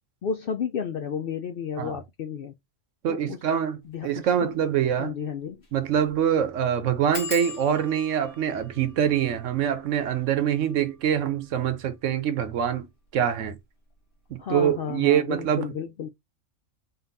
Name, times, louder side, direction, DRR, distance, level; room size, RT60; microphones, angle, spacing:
voice 1, 0.2-2.5 3.1-3.4 3.9-4.5 5.0-5.6 14.4-16.1, left 7 dB, 65° left, 0.5 m, -32 dB
voice 2, 3.0-5.1 5.7-13.6 14.3-15.7, right 9 dB, 70° right, 1.1 m, -25 dB
sound 1, 4.0-4.2 4.6-4.7 4.9-5.0 5.5-5.8 6.1-6.2 7.1-12.4 13.1-13.6 13.9-14.3 14.5-14.6, left 5 dB, 45° left, 1.5 m, -42 dB
4.0 x 2.4 x 3.8 m
omnidirectional pair, 1.4 m